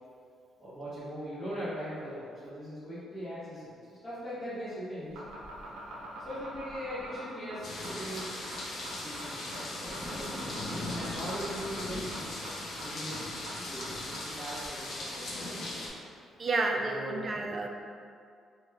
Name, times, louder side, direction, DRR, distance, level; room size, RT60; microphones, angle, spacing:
voice 1, 0.6-3.6 3.9-5.2 6.2-8.5 8.8-12.2 12.8-13.2 13.5-15.7 16.7-17.4, equal, 15° left, -16 dB, 1.5 m, -40 dB
sound 1, 5.0-14.7, right 1 dB, 85° right, 0.6 m, -44 dB
sound 2, 7.6-15.9, left 1 dB, 55° left, 0.6 m, -38 dB
voice 2, 16.4-17.7, right 3 dB, 40° right, 2 dB, 0.4 m, -30 dB
3.0 x 2.3 x 3.4 m, 2.2 s
cardioid pair, 90°, 0 cm